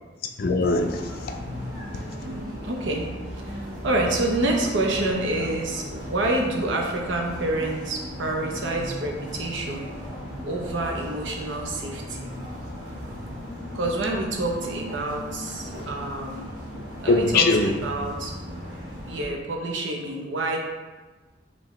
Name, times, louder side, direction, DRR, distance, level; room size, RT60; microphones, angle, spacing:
voice 1, 0.4-1.7 1.9-2.0 17.1-17.8, left 3 dB, 55° left, 6 dB, 0.4 m, -22 dB
sound 1, 0.6-19.3, equal, 45° right, 1.5 m, -37 dB
voice 2, 1.9-3.1 3.3-9.9 10.4-12.3 13.7-16.5 17.0-18.4 19.1-20.6, right 2 dB, 90° right, 1 dB, 0.7 m, -28 dB
4.8 x 2.7 x 3.1 m, 1.2 s
head